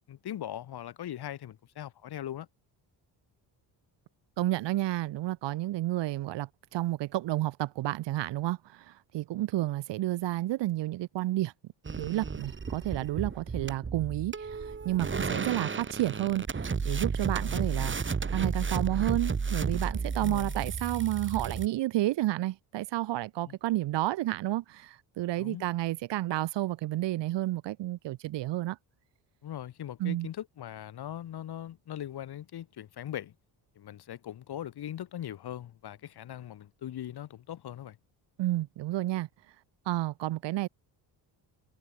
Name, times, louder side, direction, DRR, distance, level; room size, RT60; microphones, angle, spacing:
voice 1, 0.1-2.5 20.2-20.5 23.5-23.6 25.4-25.6 29.4-33.3 33.8-38.0, left 11 dB, 60° left, 3.8 m, -40 dB
voice 2, 4.4-11.5 12.0-18.0 18.3-28.8 30.0-30.3 38.4-39.3 39.9-40.7, right 15 dB, 80° right, 1.9 m, -31 dB
sound 1, 11.9-21.7, right 5 dB, 25° right, 3.9 m, -33 dB
cardioid pair, 115°, 42 cm